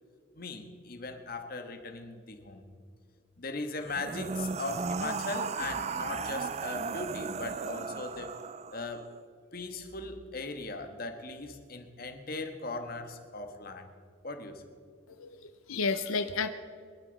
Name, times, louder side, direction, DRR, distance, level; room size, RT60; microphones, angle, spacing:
voice 1, 0.3-2.6 3.4-8.3 8.7-9.1 9.5-13.9 14.2-14.6, left 3 dB, 45° left, 5 dB, 1.4 m, -39 dB
sound 1, 3.8-9.0, right 5 dB, 30° right, 0.3 m, -36 dB
voice 2, 15.2-16.5, left 4 dB, 90° left, 9 dB, 0.7 m, -31 dB
22.5 x 12.0 x 4.1 m, 2.2 s
head